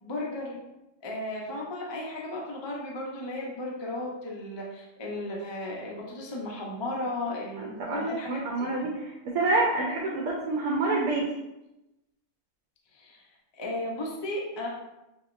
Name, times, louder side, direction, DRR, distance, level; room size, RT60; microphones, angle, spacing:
voice 1, 0.0-0.6 1.0-8.7 12.9-13.3 13.5-14.7, left 1 dB, 45° left, -3 dB, 0.3 m, -35 dB
voice 2, 7.6-11.3, right 2 dB, 85° right, -2 dB, 1.2 m, -28 dB
5.7 x 2.9 x 2.5 m, 0.94 s
omnidirectional pair, 1.6 m